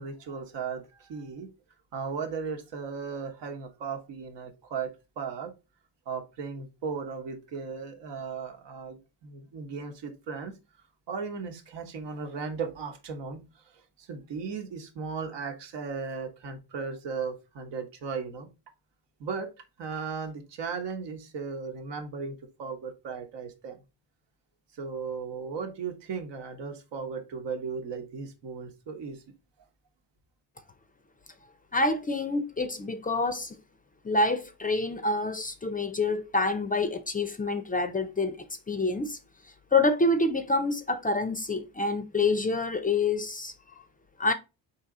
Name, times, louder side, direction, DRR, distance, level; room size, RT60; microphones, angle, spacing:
voice 1, 0.0-1.5 1.9-5.5 6.1-10.5 11.1-13.4 14.0-18.5 19.2-19.5 19.8-23.8 24.8-29.2, right 5 dB, 80° right, 1.1 m, -36 dB
voice 2, 31.7-33.6 34.0-38.4 38.7-39.2 39.7-43.5 44.2-44.3, left 2 dB, 20° left, 0.4 m, -27 dB
4.1 x 2.9 x 3.6 m
cardioid pair, 95°, 42 cm